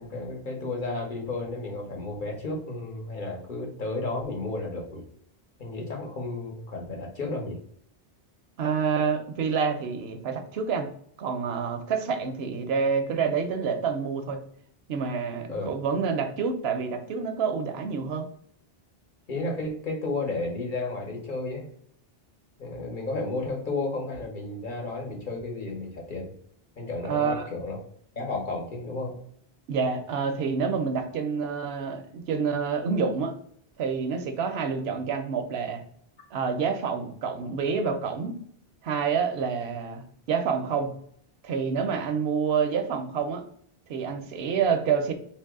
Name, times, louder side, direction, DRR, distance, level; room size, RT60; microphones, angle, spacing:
voice 1, 0.0-5.0 5.6-7.6 15.5-15.7 19.3-21.7 22.6-26.3 26.8-27.8 28.2-29.2, left 2 dB, 55° left, 0 dB, 1.0 m, -32 dB
voice 2, 8.6-10.9 11.2-14.4 14.9-18.3 27.0-27.5 29.7-33.3 33.8-35.8 36.3-38.3 38.8-40.9 41.4-43.4 43.9-45.1, right 6 dB, 80° right, 7 dB, 0.8 m, -28 dB
2.9 x 2.6 x 3.5 m, 0.65 s
omnidirectional pair, 1.0 m